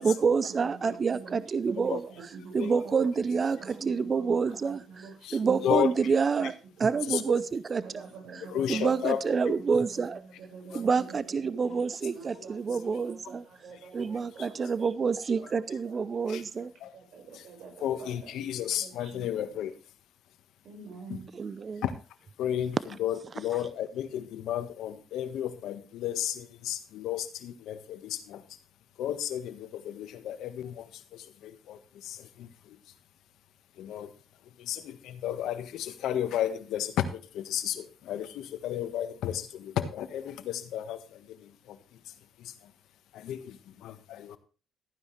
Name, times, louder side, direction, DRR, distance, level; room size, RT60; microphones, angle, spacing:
voice 1, 0.0-2.0 2.5-6.5 6.8-10.2 10.7-13.4 13.9-16.7 21.3-21.8, right 5 dB, 40° right, 0.6 m, -28 dB
voice 2, 0.6-1.4 1.7-5.1 5.4-6.1 6.4-6.5 6.9-7.2 7.8-9.1 9.6-11.2 11.5-11.8 12.1-16.0 16.5-16.7 16.9-18.3 18.6-19.2 20.6-21.3, right 4 dB, 75° right, 5.4 m, -46 dB
voice 3, 5.2-6.1 7.1-7.2 8.4-9.5 10.7-10.8 13.7-14.1 14.4-14.5 16.3-16.4 16.8-16.9 17.3-17.5 17.8-19.7 21.1-21.2 21.8-21.9 22.4-28.4 29.0-32.8 33.8-34.1 34.6-42.7 43.1-44.4, left 10 dB, 85° left, 1.4 m, -33 dB
14.5 x 9.9 x 3.3 m
cardioid pair, 90°, 0 cm